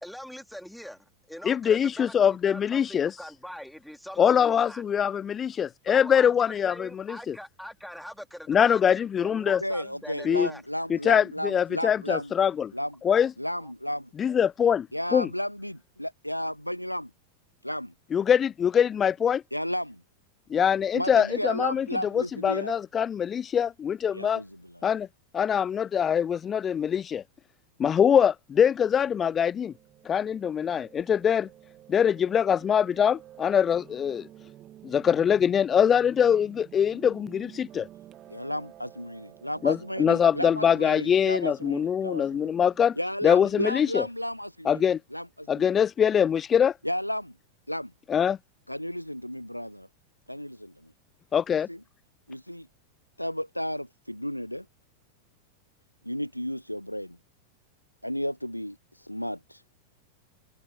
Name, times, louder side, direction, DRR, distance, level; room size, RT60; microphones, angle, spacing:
voice 1, 0.0-4.9 5.9-10.6 13.1-13.7, equal, ahead, 3.7 m, -43 dB
voice 2, 1.4-3.1 4.2-7.4 8.5-9.6 10.2-10.5 10.9-12.7 13.0-13.3 14.2-14.9 15.1-15.3 18.1-19.4 20.5-21.9 22.1-24.4 24.8-25.1 25.3-27.2 27.8-29.7 30.1-31.5 31.9-34.3 34.8-37.9 39.6-43.0 43.2-44.1 44.7-45.0 45.5-46.7 48.1-48.4 51.3-51.7, left 8 dB, 25° left, 0.4 m, -23 dB
voice 3, 9.6-12.3 12.7-13.0 13.4-14.1 14.9-17.1 17.6-17.9 19.5-20.0 20.9-22.8 24.1-24.9 38.3-42.5 43.0-45.7 46.8-47.3 47.7-47.9 48.7-49.9 50.3-50.9 51.7-51.8 52.3-52.7 53.2-54.7 56.0-57.2 58.0-59.6, equal, 90° left, 0.7 m, -33 dB
Piano, 28.7-43.1, right 12 dB, 30° right, 2.5 m, -52 dB
figure-of-eight pair, 90°, 0 cm